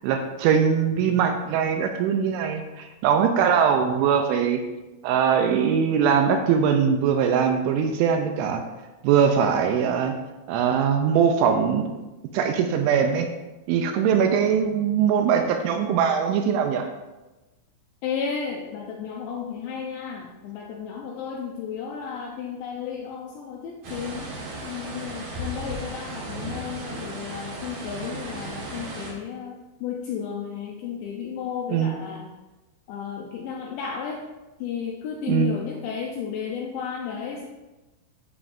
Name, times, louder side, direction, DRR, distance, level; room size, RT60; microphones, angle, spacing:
voice 1, 0.0-4.6 5.0-8.7 9.0-10.2 10.5-11.9 12.3-13.3 13.7-16.9 31.7-31.9 35.3-35.6, right 7 dB, 80° right, 5 dB, 2.8 m, -21 dB
voice 2, 18.0-24.3 24.6-32.3 32.9-34.2 34.6-37.5, left 7 dB, 80° left, 0 dB, 2.6 m, -33 dB
sound 1, 23.8-29.1, right 1 dB, 60° right, 1.9 m, -35 dB
12.0 x 7.2 x 2.6 m, 1.1 s
omnidirectional pair, 5.9 m